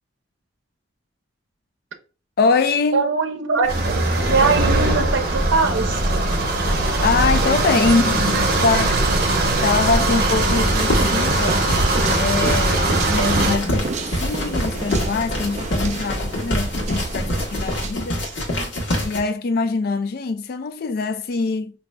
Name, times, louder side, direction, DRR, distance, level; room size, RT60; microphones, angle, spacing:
voice 1, 2.4-3.1 7.0-9.1 9.6-11.6 12.2-13.9 14.2-18.2 19.0-21.7, left 4 dB, 55° left, 0.4 m, -23 dB
voice 2, 2.9-3.9 4.3-6.0 8.3-8.4 8.7-8.8 13.2-13.3 17.2-17.3 17.7-17.8 18.5-18.7, right 4 dB, 85° right, 0.6 m, -22 dB
sound 1, 3.6-17.9, right 2 dB, 35° right, 0.4 m, -31 dB
sound 2, 3.7-13.6, right 2 dB, 55° right, 0.8 m, -20 dB
sound 3, 10.8-19.2, equal, 80° left, 1.1 m, -26 dB
5.1 x 2.7 x 2.2 m
head